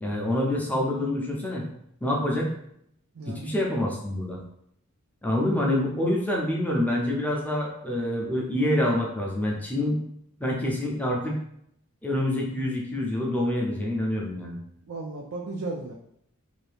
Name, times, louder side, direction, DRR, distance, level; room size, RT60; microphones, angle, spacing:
voice 1, 0.0-1.7 2.0-2.5 3.3-4.4 5.2-10.0 10.4-11.4 12.0-14.6, left 1 dB, 5° left, -2 dB, 0.6 m, -26 dB
voice 2, 3.1-3.6 14.8-15.9, right 2 dB, 65° right, 0 dB, 0.4 m, -35 dB
2.7 x 2.7 x 3.3 m, 0.73 s
head